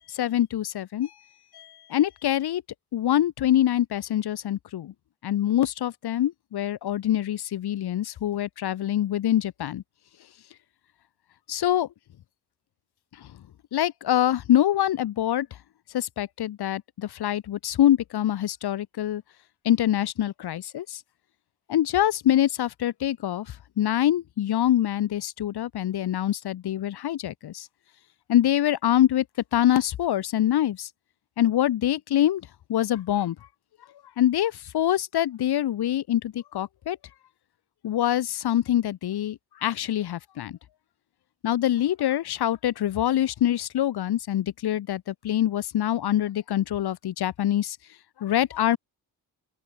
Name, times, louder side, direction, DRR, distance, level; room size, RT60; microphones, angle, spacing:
voice 1, 0.1-1.1 1.5-2.6 2.9-4.9 5.2-9.8 11.5-11.9 13.2-13.3 13.7-15.5 15.9-19.2 19.6-21.0 21.7-23.5 23.8-27.7 28.3-29.2 29.5-30.9 31.4-32.4 32.7-33.3 34.2-37.0 37.8-40.6 41.4-47.8 48.2-48.8, left 12 dB, 75° left, 1.2 m, -25 dB
open air
wide cardioid pair, 120°, 39 cm